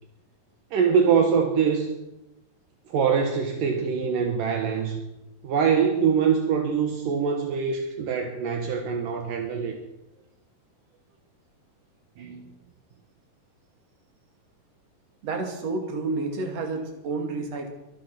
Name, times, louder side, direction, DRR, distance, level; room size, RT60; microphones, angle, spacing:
voice 1, 0.7-2.0 2.9-5.0 5.4-9.8 12.2-12.4, right 6 dB, 70° right, 3 dB, 3.0 m, -24 dB
voice 2, 15.2-17.7, right 3 dB, 50° right, 4 dB, 3.4 m, -30 dB
23.5 x 9.7 x 6.1 m, 0.94 s
omnidirectional pair, 4.0 m